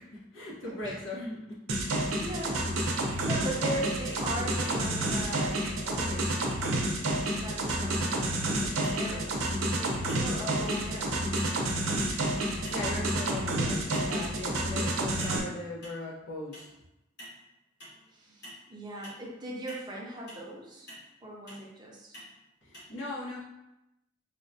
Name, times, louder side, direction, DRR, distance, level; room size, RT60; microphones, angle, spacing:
voice 1, 0.0-1.4 12.7-16.7 22.6-23.4, left 2 dB, 70° left, -5 dB, 1.0 m, -38 dB
sound 1, 1.7-15.4, right 1 dB, 90° right, 0.6 m, -30 dB
voice 2, 2.2-6.3 7.4-9.4 9.7-9.9 10.2-11.2 12.3-12.5 18.1-20.9 21.2-22.2, right 1 dB, 20° right, -2 dB, 0.5 m, -39 dB
sound 2, 3.1-3.2 3.6-3.8 4.1-4.2 4.6-4.8 5.1-5.2 5.6-5.8 6.1-6.2 6.6-6.8 7.1-7.2 8.8-9.0 9.4-9.7 10.1-10.3 10.7-10.9 11.4-11.6 12.0-12.2 12.6-12.9 13.3-13.5 13.9-14.2 14.5-14.7 15.2-15.4 15.8-16.0 16.5-16.7 17.2-17.4 17.8-18.0 18.4-18.6 19.0-19.2 19.7-19.8 20.3-20.4 20.9-21.1 21.5-21.6 22.1-22.3 22.7-22.8, equal, 55° left, 1.3 m, -47 dB
4.8 x 2.1 x 2.6 m, 0.91 s
head